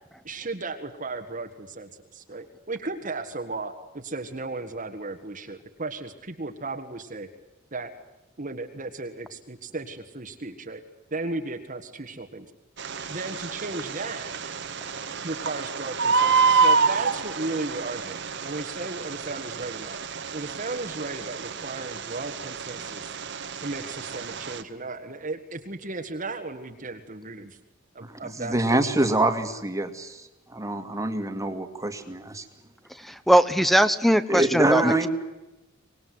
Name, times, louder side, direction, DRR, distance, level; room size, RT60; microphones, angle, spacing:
voice 1, 0.2-7.3 7.7-7.9 8.4-10.8 11.1-12.5 13.1-14.4 15.2-20.0 20.3-23.1 23.6-27.6 27.9-29.0, right 3 dB, 40° right, 4 dB, 1.8 m, -35 dB
Bird, 12.8-24.6, right 5 dB, 60° right, 1.7 m, -28 dB
voice 2, 28.0-32.4 34.3-35.1, right 2 dB, 15° right, 7 dB, 2.3 m, -25 dB
voice 3, 33.0-35.1, equal, ahead, 13 dB, 1.1 m, -20 dB
25.0 x 20.5 x 9.6 m, 1.0 s
head